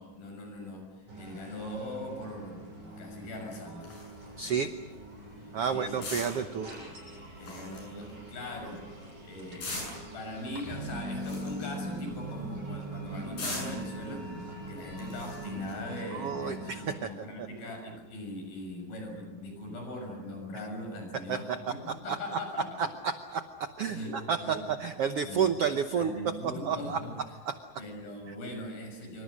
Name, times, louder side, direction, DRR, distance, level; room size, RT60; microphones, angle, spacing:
voice 1, 0.0-4.0 5.4-6.0 7.4-22.9 23.8-24.9 25.2-25.5 26.0-27.4 27.8-29.2, left 1 dB, 85° left, 3 dB, 8.3 m, -41 dB
sound 1, 1.1-17.0, right 1 dB, 40° right, 8.2 m, -42 dB
sound 2, 3.8-15.9, left 2 dB, 65° left, 9.3 m, -44 dB
voice 2, 4.4-4.7 5.5-6.7 16.1-17.1 17.4-17.5 21.3-21.6 22.1-22.2 22.8-23.4 23.8-24.0 24.3-26.1 26.6-27.0, right 7 dB, 80° right, 8 dB, 1.3 m, -30 dB
26.5 x 25.5 x 6.5 m, 1.1 s
omnidirectional pair, 4.1 m